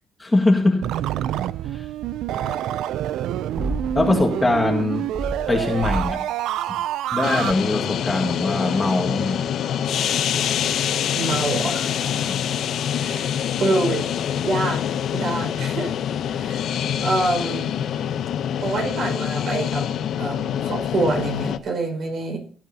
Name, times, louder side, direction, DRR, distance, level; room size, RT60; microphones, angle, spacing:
voice 1, 0.2-0.9 1.7-1.9 3.9-5.1 5.5-6.2 7.1-9.4 12.2-12.4, left 2 dB, 20° left, 0 dB, 1.8 m, -21 dB
sound 1, 0.8-7.5, right 12 dB, 85° right, 0.4 m, -27 dB
sound 2, 3.6-4.6 5.1-6.1, right 1 dB, 10° right, 1.1 m, -30 dB
sound 3, 7.2-21.6, left 9 dB, 75° left, 0.7 m, -25 dB
voice 2, 11.2-12.1 13.0-14.1 14.4-14.8 15.1-15.9 16.4-16.7 17.0-17.7 18.6-19.9 20.2-22.4, right 2 dB, 65° right, 3 dB, 5.2 m, -26 dB
17.5 x 9.6 x 2.8 m, 0.43 s
cardioid pair, 90°, 0 cm